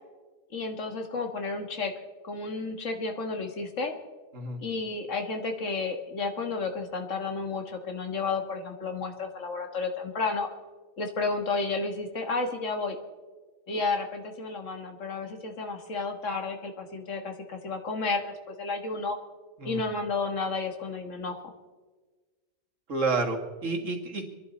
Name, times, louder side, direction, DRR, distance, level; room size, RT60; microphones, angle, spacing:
voice 1, 0.5-1.9 2.2-3.9 4.6-10.5 11.0-13.0 13.7-19.2 19.6-21.4, left 3 dB, 75° left, 4 dB, 1.9 m, -32 dB
voice 2, 22.9-24.3, right 3 dB, 80° right, 2 dB, 2.2 m, -29 dB
27.0 x 11.0 x 4.2 m, 1.4 s
omnidirectional pair, 1.3 m